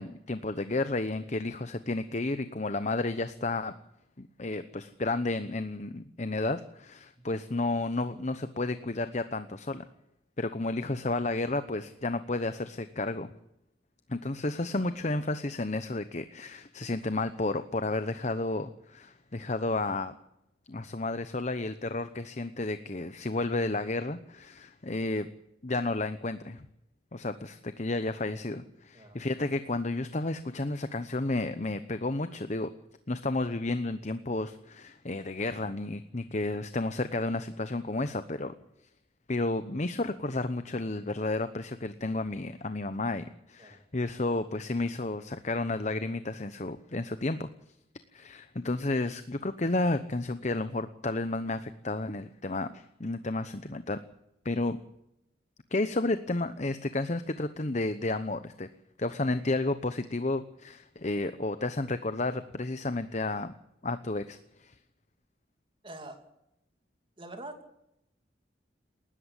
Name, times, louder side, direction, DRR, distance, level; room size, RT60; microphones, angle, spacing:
voice 1, 0.0-3.7 4.2-9.8 10.4-13.3 14.1-20.2 20.7-25.3 25.6-26.7 27.1-32.7 33.1-38.5 39.3-47.5 48.1-54.0 54.4-54.8 55.7-58.7 59.0-63.5 63.8-64.7, left 2 dB, 40° left, 11 dB, 0.9 m, -32 dB
voice 2, 65.8-66.2 67.2-67.6, right 2 dB, 30° right, 5 dB, 3.0 m, -44 dB
19.5 x 13.5 x 9.9 m, 0.83 s
head